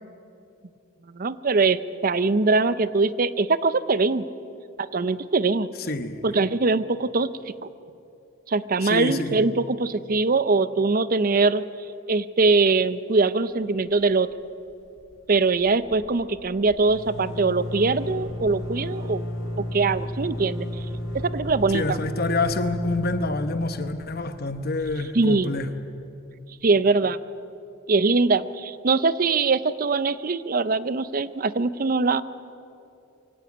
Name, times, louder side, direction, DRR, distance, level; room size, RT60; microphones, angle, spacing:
voice 1, 1.1-4.2 4.8-5.7 6.2-7.3 8.5-11.6 12.1-14.3 15.3-19.2 19.7-20.7 21.3-22.0 25.1-25.5 26.6-27.2 27.9-32.2, right 3 dB, 45° right, 15 dB, 0.6 m, -22 dB
voice 2, 5.9-6.4 8.8-9.4 21.7-25.8, left 2 dB, 50° left, 9 dB, 1.1 m, -27 dB
sound 1, 13.8-14.3 14.6-14.7 15.0-25.6, left 1 dB, 70° left, 3.9 m, -34 dB
23.5 x 16.5 x 8.6 m, 2.7 s
head